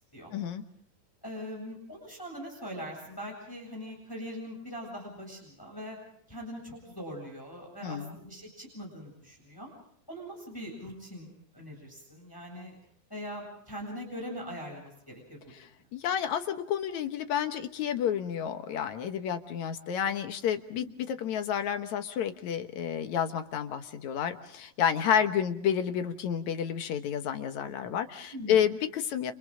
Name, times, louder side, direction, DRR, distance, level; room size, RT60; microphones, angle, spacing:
voice 1, 0.3-0.6 7.8-8.2 15.9-29.3, left 9 dB, 65° left, 8 dB, 2.3 m, -30 dB
voice 2, 1.2-6.0 6.3-9.7 10.1-12.8 13.1-15.4 20.7-21.1 28.3-28.6, equal, 5° left, 0 dB, 7.5 m, -42 dB
29.5 x 29.5 x 3.8 m, 0.65 s
omnidirectional pair, 4.0 m